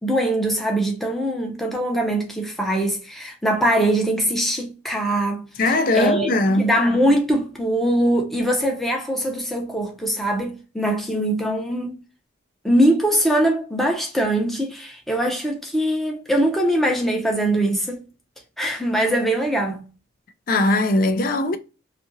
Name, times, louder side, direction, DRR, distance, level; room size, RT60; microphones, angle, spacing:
voice 1, 0.0-5.5 5.9-6.3 6.6-12.0 12.6-18.0 18.6-19.8, right 1 dB, ahead, 0.6 m, -22 dB
voice 2, 5.6-6.7 20.5-21.6, left 2 dB, 45° left, 0.4 m, -20 dB
2.8 x 2.4 x 2.6 m
head